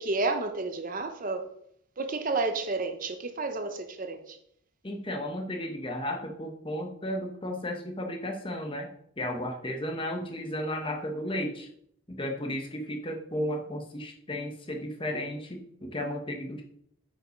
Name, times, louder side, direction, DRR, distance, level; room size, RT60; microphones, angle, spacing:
voice 1, 0.0-1.4 2.0-4.4, right 3 dB, 40° right, 7 dB, 0.8 m, -31 dB
voice 2, 4.8-8.9 9.2-11.7 12.1-16.6, left 1 dB, 25° left, 3 dB, 1.2 m, -34 dB
8.6 x 5.7 x 5.1 m, 0.70 s
head